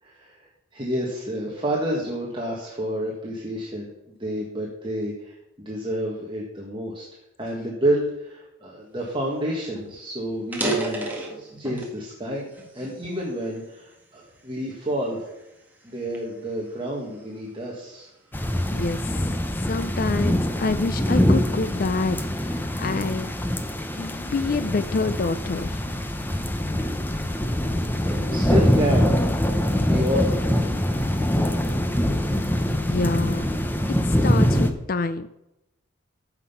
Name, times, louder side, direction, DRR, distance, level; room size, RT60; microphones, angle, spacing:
voice 1, 0.0-7.0 7.4-11.1 11.3-15.3 15.8-18.1 27.3-27.6 28.0-30.8 31.1-31.8, equal, 25° right, -2 dB, 1.7 m, -30 dB
sound 1, 9.3-9.4 9.7-9.9 10.4-12.0 12.5-13.8 14.4-14.7 15.3-17.3, right 2 dB, 10° right, 1.8 m, -31 dB
sound 2, 18.3-34.7, equal, 10° left, 0.8 m, -24 dB
voice 2, 18.7-19.3 19.6-23.3 24.0-25.8 32.8-33.5 34.0-35.3, left 3 dB, 45° left, 12 dB, 0.4 m, -27 dB
14.5 x 5.9 x 5.7 m, 0.89 s
head